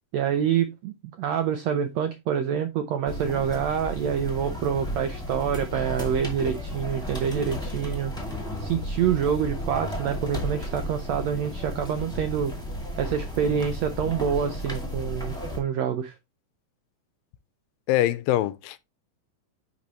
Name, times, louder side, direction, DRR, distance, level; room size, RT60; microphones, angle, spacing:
voice 1, 0.1-8.1 8.6-12.5 13.0-16.1, right 8 dB, 80° right, 1.5 m, -27 dB
sound 1, 3.1-15.6, equal, ahead, 1.5 m, -33 dB
voice 2, 17.9-18.8, left 14 dB, 85° left, 2.3 m, -23 dB
10.0 x 4.2 x 3.0 m
omnidirectional pair, 4.0 m